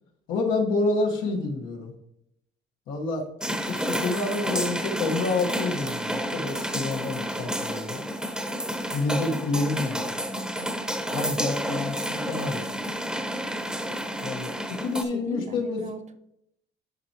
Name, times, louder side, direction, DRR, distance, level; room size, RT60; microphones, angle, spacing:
voice 1, 0.3-1.9 2.9-8.0 8.9-10.1 11.1-12.9 14.2-15.9, left 3 dB, 90° left, 1 dB, 1.3 m, -28 dB
sound 1, 3.4-15.0, equal, 5° right, 0.8 m, -30 dB
voice 2, 10.3-10.9 15.0-16.2, right 3 dB, 35° right, 8 dB, 0.7 m, -39 dB
11.0 x 4.6 x 2.9 m, 0.79 s
cardioid pair, 90°, 20 cm